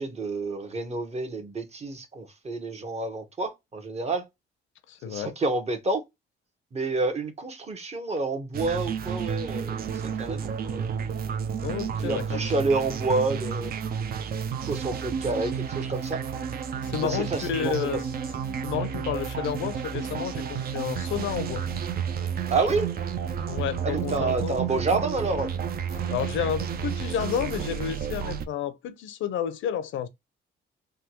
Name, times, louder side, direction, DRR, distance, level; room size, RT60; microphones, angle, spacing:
voice 1, 0.0-4.3 5.1-6.0 6.7-9.9 10.2-10.9 12.0-13.7 14.7-16.2 17.0-18.0 22.5-22.9 23.8-25.5, right 3 dB, 30° right, 1.0 m, -29 dB
voice 2, 4.9-5.3 11.6-12.5 16.8-18.1 18.6-21.6 23.5-24.6 26.1-30.1, left 9 dB, 75° left, 0.6 m, -31 dB
sound 1, 8.5-28.5, right 7 dB, 50° right, 0.5 m, -31 dB
3.4 x 2.2 x 2.8 m
cardioid pair, 90°, 20 cm